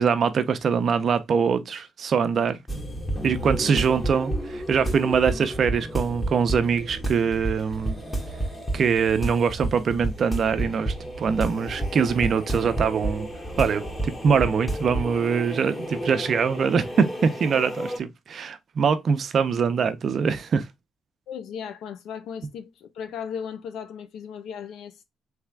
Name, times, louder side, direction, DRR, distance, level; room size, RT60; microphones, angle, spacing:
voice 1, 0.0-2.6 3.2-8.0 8.7-13.3 13.6-20.7, right 6 dB, 55° right, 0.6 m, -23 dB
sound 1, 2.7-18.0, right 1 dB, 15° left, 1.4 m, -31 dB
voice 2, 21.3-25.0, left 7 dB, 80° left, 0.7 m, -36 dB
3.5 x 3.3 x 3.4 m
cardioid pair, 90°, 0 cm